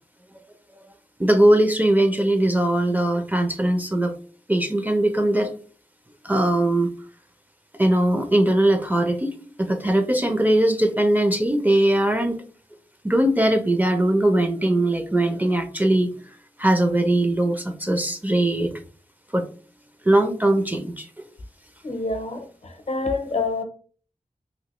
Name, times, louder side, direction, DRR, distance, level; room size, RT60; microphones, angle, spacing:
voice 1, 1.2-4.1 4.5-5.5 6.2-6.9 7.8-12.4 13.0-16.1 16.6-18.8 19.3-19.4 20.1-21.3, right 1 dB, 15° right, 6 dB, 0.4 m, -20 dB
voice 2, 21.8-23.6, left 3 dB, 60° left, 5 dB, 0.6 m, -27 dB
3.0 x 2.9 x 2.9 m, 0.42 s
wide cardioid pair, 70°, 12 cm